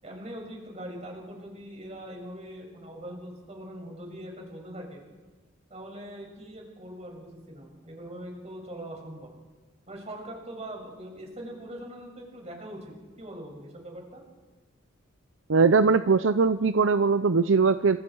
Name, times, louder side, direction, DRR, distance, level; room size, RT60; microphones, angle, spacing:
voice 1, 0.0-5.0 5.7-9.3 9.9-14.2, right 1 dB, 35° right, 1 dB, 6.8 m, -42 dB
voice 2, 15.5-18.0, right 4 dB, 70° right, 11 dB, 0.6 m, -21 dB
29.0 x 26.5 x 4.7 m, 1.3 s
head